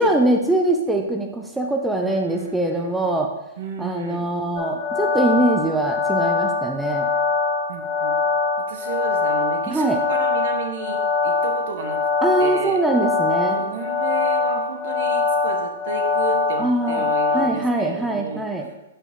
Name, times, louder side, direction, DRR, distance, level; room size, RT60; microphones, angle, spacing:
voice 1, 0.0-3.3 3.8-7.1 9.7-10.0 12.2-13.6 16.6-17.1 17.3-18.7, right 2 dB, 5° right, 2 dB, 0.6 m, -22 dB
voice 2, 2.0-3.2 3.6-4.3 7.7-8.2 8.7-12.0 12.4-12.8 13.5-18.5, right 5 dB, 60° right, 4 dB, 1.1 m, -33 dB
sound 1, 4.6-17.5, left 4 dB, 35° left, 1.8 m, -23 dB
6.2 x 5.4 x 3.6 m, 0.97 s
figure-of-eight pair, 115°, 0 cm